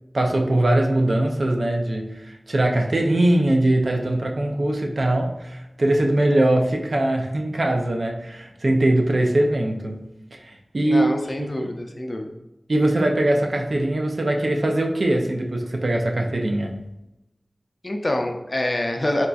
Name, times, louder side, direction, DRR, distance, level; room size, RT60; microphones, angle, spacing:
voice 1, 0.1-10.0 10.4-11.1 11.4-11.7 12.7-16.8, right 1 dB, 70° right, 2 dB, 0.5 m, -21 dB
voice 2, 10.8-12.3 17.8-19.3, left 1 dB, 40° left, 3 dB, 0.4 m, -26 dB
4.2 x 2.5 x 2.3 m, 0.93 s
wide cardioid pair, 55°, 0 cm